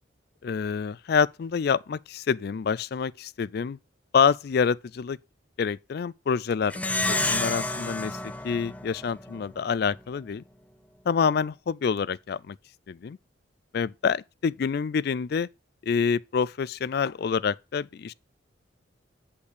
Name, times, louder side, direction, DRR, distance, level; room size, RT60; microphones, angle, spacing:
voice 1, 0.4-3.8 4.1-5.2 5.6-8.2 8.4-10.4 11.1-12.6 12.9-13.2 13.7-15.5 15.8-18.1, left 6 dB, 55° left, 0.3 m, -27 dB
Plucked string instrument, 6.7-9.5, left 2 dB, 10° left, 0.6 m, -29 dB
8.4 x 5.5 x 4.9 m
head